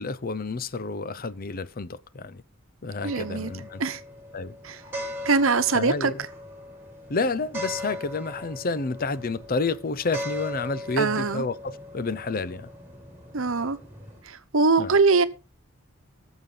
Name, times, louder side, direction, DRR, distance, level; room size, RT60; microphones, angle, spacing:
voice 1, 0.0-2.4 2.8-3.8 4.3-4.5 5.7-6.1 7.1-12.7 14.8-15.0, left 3 dB, 45° left, 0.7 m, -30 dB
sound 1, 3.0-14.2, left 1 dB, 10° right, 5.4 m, -39 dB
voice 2, 3.0-3.5 3.8-4.0 4.6-4.8 5.2-6.3 11.0-11.4 13.3-13.8 14.2-15.2, right 4 dB, 70° right, 1.0 m, -22 dB
19.0 x 7.2 x 3.9 m
head